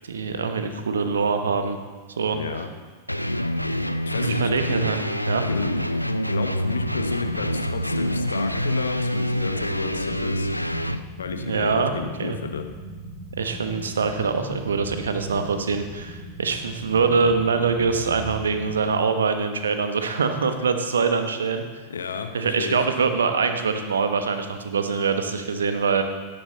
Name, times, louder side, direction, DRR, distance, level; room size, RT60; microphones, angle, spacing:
voice 1, 0.0-1.8 2.2-2.4 4.2-5.4 11.3-11.9 12.2-12.4 13.4-21.6 22.3-26.0, right 5 dB, 70° right, 7 dB, 1.1 m, -24 dB
voice 2, 2.3-2.7 4.1-4.5 5.5-5.7 6.1-10.5 11.2-12.6 21.9-22.8, left 5 dB, 70° left, 6 dB, 1.0 m, -32 dB
sound 1, 3.1-11.0, equal, 90° left, 0.4 m, -26 dB
sound 2, 6.6-18.7, equal, 15° right, 2.0 m, -39 dB
17.0 x 6.8 x 4.0 m, 1.4 s
figure-of-eight pair, 90°, 0 cm